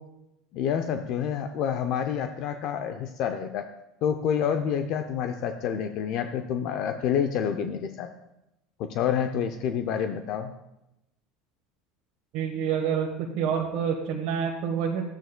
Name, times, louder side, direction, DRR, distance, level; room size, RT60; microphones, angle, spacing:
voice 1, 0.5-3.6 4.0-8.1 8.9-10.5, left 8 dB, 60° left, 7 dB, 0.5 m, -28 dB
voice 2, 12.3-15.0, right 7 dB, 65° right, -1 dB, 1.2 m, -27 dB
13.0 x 8.9 x 2.2 m, 0.90 s
supercardioid pair, 110°, 0 cm